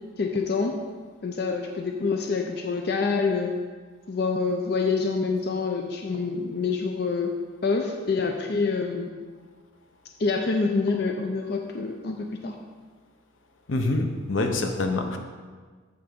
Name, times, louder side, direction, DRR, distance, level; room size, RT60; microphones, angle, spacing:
voice 1, 0.2-0.8 1.2-3.5 4.1-7.3 7.6-9.1 10.2-12.6, left 4 dB, 55° left, 3 dB, 0.5 m, -26 dB
voice 2, 13.7-15.2, left 2 dB, 85° left, 4 dB, 0.8 m, -26 dB
8.7 x 3.5 x 6.8 m, 1.5 s
head